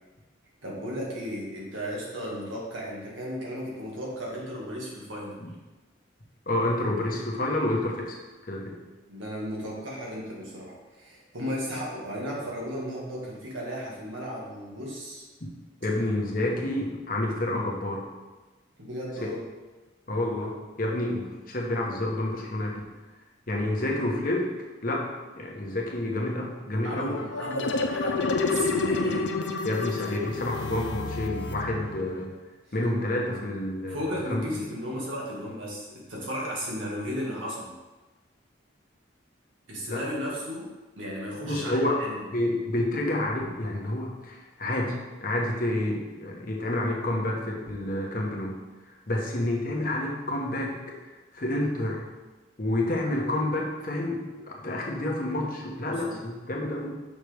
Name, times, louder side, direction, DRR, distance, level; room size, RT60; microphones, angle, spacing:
voice 1, 0.6-5.4 9.1-15.3 18.8-19.4 26.8-29.4 29.8-30.2 33.9-37.8 39.7-42.3 55.9-56.2, equal, 85° right, -3 dB, 1.9 m, -35 dB
voice 2, 6.5-8.2 8.4-8.8 15.8-18.0 20.1-22.9 23.5-24.5 24.8-25.1 25.4-27.2 29.6-32.3 32.7-34.4 39.9-40.0 41.5-42.0 42.3-48.6 48.9-52.0 52.6-56.9, left 1 dB, 45° left, -1 dB, 1.1 m, -29 dB
sound 1, 26.9-32.2, left 3 dB, 65° left, 0.5 m, -29 dB
6.3 x 5.8 x 3.4 m, 1.2 s
head